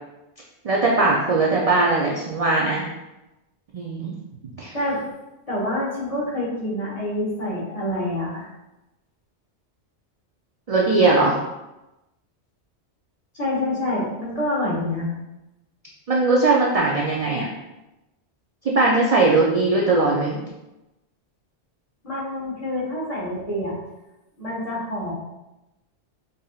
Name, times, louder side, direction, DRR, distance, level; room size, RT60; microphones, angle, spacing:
voice 1, 0.6-2.8 3.7-4.2 4.6-4.7 10.7-11.4 16.1-17.5 18.6-20.4, right 3 dB, 55° right, -3 dB, 0.4 m, -19 dB
voice 2, 5.5-8.5 13.3-15.1 22.0-23.7 24.4-25.1, left 1 dB, 35° left, -8 dB, 1.3 m, -27 dB
5.2 x 2.6 x 2.3 m, 0.98 s
omnidirectional pair, 1.2 m